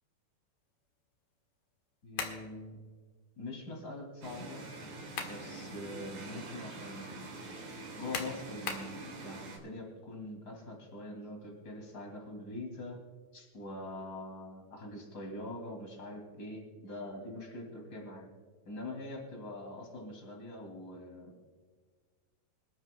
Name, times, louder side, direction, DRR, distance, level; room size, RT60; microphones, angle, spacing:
voice 1, 2.0-2.8 3.4-4.6 5.2-7.2 7.9-13.0 13.3-18.3 18.7-21.3, left 1 dB, 30° left, 0 dB, 1.9 m, -44 dB
sound 1, 2.1-2.5 4.8-5.4 5.9-6.0 8.1-8.9, left 6 dB, 65° left, 2.1 m, -38 dB
sound 2, 4.2-9.6, right 2 dB, 50° right, 3.7 m, -45 dB
26.0 x 12.0 x 2.3 m, 1.5 s
omnidirectional pair, 6.0 m